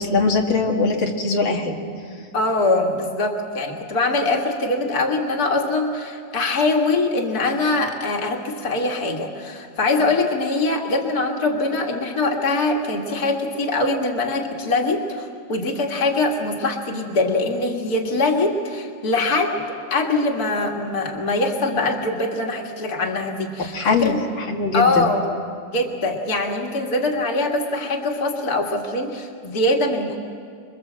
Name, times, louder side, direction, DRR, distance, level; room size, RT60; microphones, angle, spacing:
voice 1, 0.0-1.8 23.7-25.1, left 3 dB, 90° left, 0 dB, 2.6 m, -21 dB
voice 2, 2.3-19.6 19.9-24.2 24.7-25.2 25.7-30.2, left 2 dB, 55° left, 1 dB, 2.5 m, -23 dB
27.0 x 22.5 x 7.5 m, 2.2 s
omnidirectional pair, 2.0 m